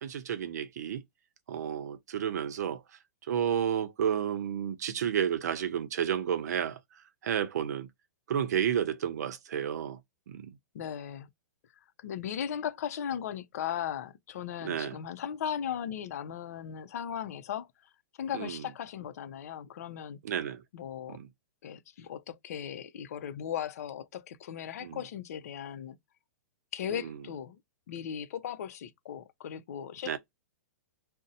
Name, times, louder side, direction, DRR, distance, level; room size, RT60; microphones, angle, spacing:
voice 1, 0.0-1.0 1.5-3.0 3.3-7.9 8.3-10.0 10.3-10.5 14.6-15.0 18.3-18.6 20.2-20.6 21.1-21.3 24.8-25.0 26.9-27.2 30.0-30.2, right 9 dB, 70° right, 0.6 m, -31 dB
voice 2, 10.7-11.3 12.0-17.7 18.2-20.2 20.7-21.2 21.6-26.0 26.7-27.6 27.9-30.2, left 9 dB, 60° left, 0.6 m, -37 dB
2.6 x 2.0 x 4.0 m
hypercardioid pair, 155°, 9 cm